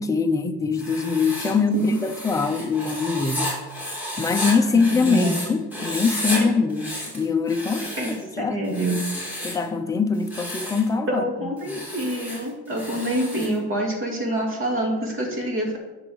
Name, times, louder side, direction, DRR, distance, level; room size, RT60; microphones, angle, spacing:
voice 1, 0.0-3.5 4.2-7.9 8.2-8.6 9.4-11.9, left 4 dB, 10° left, 0.5 m, -23 dB
Writing, 0.7-5.5 5.7-6.4 6.7-8.2 8.7-9.6 10.1-10.9 11.6-13.6, left 1 dB, 5° right, 3.0 m, -32 dB
voice 2, 5.1-5.4 8.0-8.1 8.4-9.0 11.1-15.8, right 1 dB, 40° right, 2.6 m, -26 dB
9.5 x 6.2 x 4.6 m
cardioid pair, 140°, 33 cm